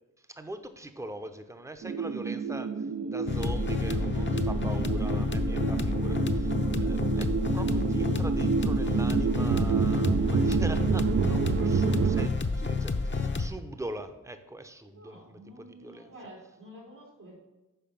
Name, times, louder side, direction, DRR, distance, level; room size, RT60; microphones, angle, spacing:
voice 1, 0.2-16.3, right 1 dB, 10° right, 8 dB, 0.7 m, -42 dB
sound 1, 1.8-12.3, right 6 dB, 45° right, 0.5 m, -29 dB
sound 2, 3.3-13.5, left 4 dB, 35° left, 0.8 m, -29 dB
voice 2, 14.8-17.4, equal, 80° right, -3 dB, 2.6 m, -49 dB
6.8 x 5.0 x 5.3 m, 1.1 s
cardioid pair, 45°, 31 cm